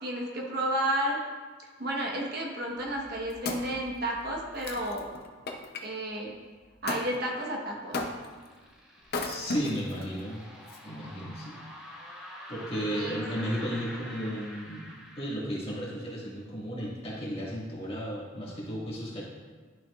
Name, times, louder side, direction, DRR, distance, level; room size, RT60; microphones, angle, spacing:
voice 1, 0.0-1.2 1.8-5.1 5.8-6.3 6.8-8.0 12.9-13.7, right 1 dB, 60° right, -1 dB, 1.2 m, -32 dB
Wood, 2.9-5.9 6.9-7.1 7.9-8.5 9.0-10.0 10.7-10.8, left 2 dB, 55° left, 0.7 m, -35 dB
sound 1, 7.6-15.3, equal, 5° right, 1.1 m, -46 dB
voice 2, 9.2-10.4 10.8-11.6 12.5-19.2, equal, 30° left, -6 dB, 1.9 m, -34 dB
11.0 x 5.9 x 2.4 m, 1.4 s
head